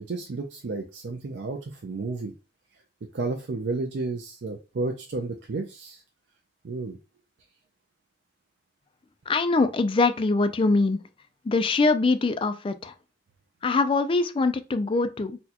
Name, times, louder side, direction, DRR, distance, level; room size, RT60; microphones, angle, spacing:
voice 1, 0.0-2.3 3.1-6.0 6.6-7.0, right 3 dB, 75° right, 0.5 m, -32 dB
voice 2, 9.3-11.0 11.4-12.9 13.6-15.4, left 3 dB, 30° left, 0.3 m, -23 dB
4.1 x 2.3 x 2.8 m
head